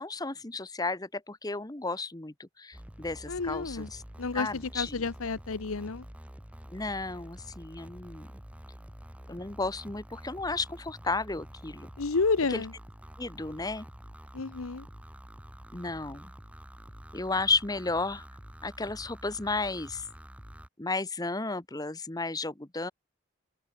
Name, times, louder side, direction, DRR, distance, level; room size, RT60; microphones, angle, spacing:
voice 1, 0.0-4.0 4.3-5.0 6.7-8.3 9.3-11.9 12.5-12.6 13.2-13.9 15.7-16.3 17.1-18.2 18.6-20.0 20.8-22.9, left 3 dB, 15° left, 1.1 m, -33 dB
sound 1, 2.7-20.7, equal, 5° right, 1.7 m, -48 dB
voice 2, 3.3-3.9 4.2-6.0 12.0-12.7 14.3-14.9, left 4 dB, 75° left, 0.9 m, -30 dB
head